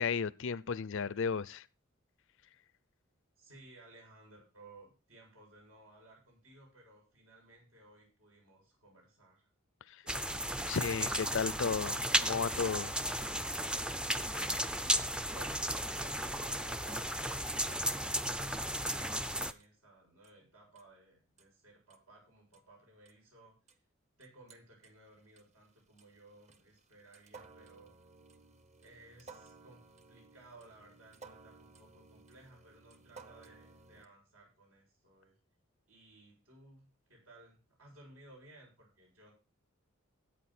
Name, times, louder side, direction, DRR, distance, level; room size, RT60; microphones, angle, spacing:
voice 1, 0.0-1.7 9.9-10.0 10.6-12.9, left 6 dB, 65° left, 0.5 m, -34 dB
voice 2, 3.4-9.5 10.0-10.5 15.3-23.8 24.2-27.9 28.8-35.4 35.9-39.3, right 2 dB, 80° right, 7.6 m, -59 dB
sound 1, 10.1-19.5, equal, 5° right, 0.5 m, -34 dB
sound 2, 19.6-19.7 20.2-20.3 20.8-20.9 21.4-21.5 21.9-22.0 22.5-22.6 23.1-23.2 23.7-23.8 24.2-24.9 25.4-34.1, right 4 dB, 35° right, 1.1 m, -57 dB
14.0 x 8.9 x 4.3 m
head